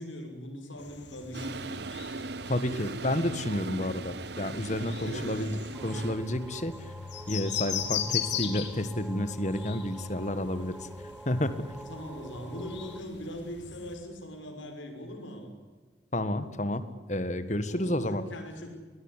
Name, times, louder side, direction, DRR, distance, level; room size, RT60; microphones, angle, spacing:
voice 1, 0.0-1.8 5.0-6.0 11.9-15.5 17.7-18.8, equal, 85° left, 4 dB, 6.0 m, -41 dB
sound 1, 0.8-14.0, left 9 dB, 70° left, 2.7 m, -40 dB
Toilet flush, 1.3-6.6, right 3 dB, 60° right, 0.7 m, -39 dB
voice 2, 2.5-6.9 7.3-10.7 11.2-11.6 16.1-16.8 17.1-18.2, left 1 dB, 40° left, 12 dB, 1.7 m, -30 dB
sound 2, 5.7-13.0, right 1 dB, 5° right, 1.1 m, -47 dB
21.0 x 20.0 x 9.9 m, 1.4 s
head